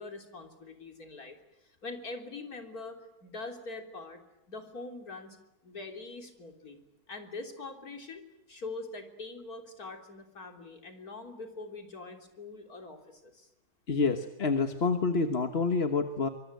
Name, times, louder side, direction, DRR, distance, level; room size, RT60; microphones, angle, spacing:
voice 1, 0.0-4.2 4.5-5.4 5.6-6.8 7.1-8.2 8.5-13.5, left 3 dB, 65° left, 4 dB, 3.8 m, -43 dB
voice 2, 13.9-16.3, left 4 dB, 40° left, 7 dB, 1.4 m, -28 dB
24.5 x 24.0 x 9.3 m, 0.91 s
omnidirectional pair, 1.7 m